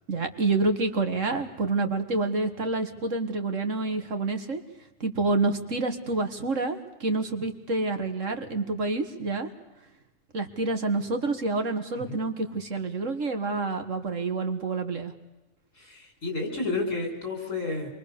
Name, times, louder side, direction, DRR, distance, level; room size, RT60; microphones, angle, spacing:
voice 1, 0.1-4.6 5.0-9.5 10.3-15.1, right 3 dB, 70° right, 7 dB, 2.3 m, -28 dB
voice 2, 15.7-18.0, left 3 dB, 70° left, 2 dB, 6.2 m, -31 dB
27.0 x 23.0 x 6.9 m, 1.0 s
omnidirectional pair, 1.4 m